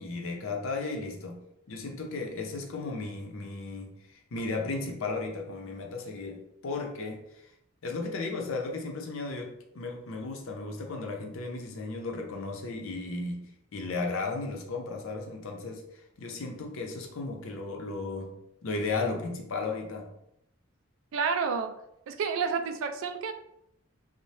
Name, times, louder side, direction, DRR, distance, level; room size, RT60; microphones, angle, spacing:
voice 1, 0.0-4.0 4.3-7.3 7.8-13.5 13.7-15.8 16.2-20.1, left 3 dB, 70° left, 2 dB, 0.5 m, -35 dB
voice 2, 21.1-21.8 22.1-23.3, right 5 dB, 70° right, 8 dB, 0.3 m, -29 dB
2.7 x 2.0 x 3.1 m, 0.79 s
head